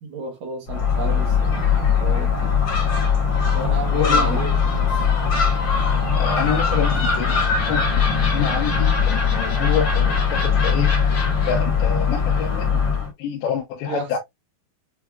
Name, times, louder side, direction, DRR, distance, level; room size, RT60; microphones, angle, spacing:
voice 1, 0.0-2.5 3.5-5.0 13.9-14.1, right 3 dB, 75° right, 1.7 m, -33 dB
Gull seagull, 0.7-13.1, left 6 dB, 55° left, 1.6 m, -20 dB
voice 2, 3.9-4.4 6.2-10.9 11.5-12.8 13.2-14.2, left 8 dB, 80° left, 2.7 m, -27 dB
6.8 x 2.3 x 2.3 m
omnidirectional pair, 4.5 m